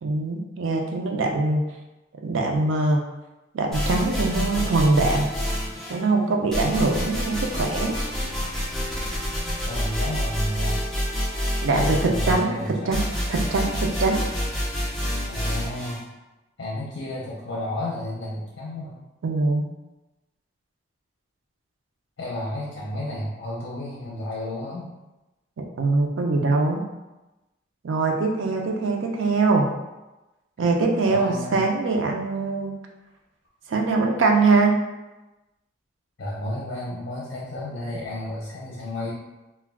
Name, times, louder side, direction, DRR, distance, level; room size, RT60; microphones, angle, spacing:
voice 1, 0.0-1.7 2.2-3.0 3.5-5.3 5.9-8.0 11.6-13.0 13.3-14.2 19.2-19.7 25.6-26.8 27.8-29.7 30.6-32.7 33.7-34.8, right 3 dB, 80° right, 1 dB, 0.4 m, -22 dB
sound 1, 3.7-6.0 6.5-16.0, equal, ahead, 0.5 m, -28 dB
voice 2, 9.6-10.9 11.7-13.0 15.3-16.1 16.6-19.0 22.2-24.9 31.0-31.6 36.2-39.1, left 1 dB, 55° left, -5 dB, 0.6 m, -32 dB
2.2 x 2.2 x 3.4 m, 1.0 s
head